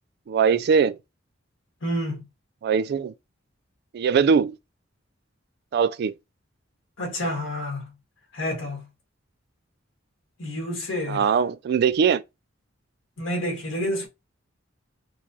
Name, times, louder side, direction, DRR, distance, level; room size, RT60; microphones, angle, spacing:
voice 1, 0.3-1.0 2.6-3.1 3.9-4.6 5.7-6.1 11.1-12.2, right 6 dB, 55° right, 0.3 m, -21 dB
voice 2, 1.8-2.3 7.0-7.9 8.3-8.9 10.4-11.3 13.2-14.1, equal, 80° left, 1.7 m, -29 dB
4.6 x 2.3 x 2.7 m
head